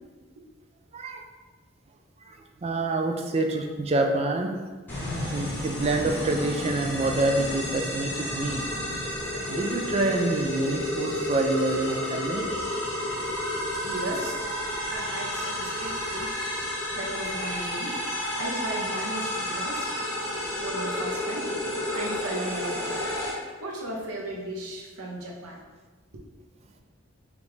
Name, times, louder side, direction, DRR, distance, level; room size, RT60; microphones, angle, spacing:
voice 1, 0.9-1.2 2.3-4.5 5.0-8.7 9.5-12.5, right 2 dB, 30° right, 3 dB, 0.3 m, -27 dB
sound 1, 4.9-23.3, left 1 dB, 10° left, 0.9 m, -31 dB
voice 2, 13.8-14.4 14.9-16.3 17.0-18.0 18.4-19.9 20.6-21.5 21.9-23.0 23.6-25.6 26.1-26.2, right 1 dB, 85° right, -2 dB, 0.8 m, -36 dB
5.1 x 2.5 x 3.2 m, 1.3 s
head